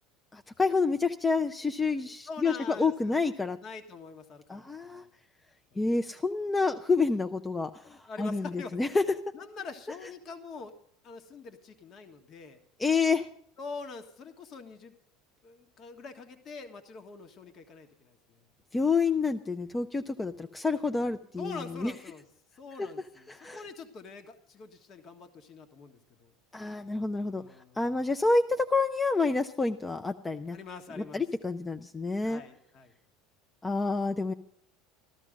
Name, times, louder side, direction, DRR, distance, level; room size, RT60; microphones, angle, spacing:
voice 1, 0.3-3.6 4.5-5.0 5.8-9.0 12.8-13.3 18.7-21.5 21.8-21.9 23.3-23.6 26.5-27.4 27.8-30.6 31.1-32.4 33.6-34.3, left 4 dB, 15° left, 8 dB, 0.6 m, -28 dB
voice 2, 1.9-3.2 3.6-5.1 5.7-5.8 8.1-8.8 9.3-10.7 11.0-12.6 13.6-14.9 15.4-18.4 21.4-22.2 22.6-26.3 27.2-27.9 30.5-31.2 32.2-32.9, left 4 dB, 45° left, 6 dB, 1.6 m, -45 dB
14.5 x 13.0 x 5.2 m, 0.64 s
hypercardioid pair, 80°, 0 cm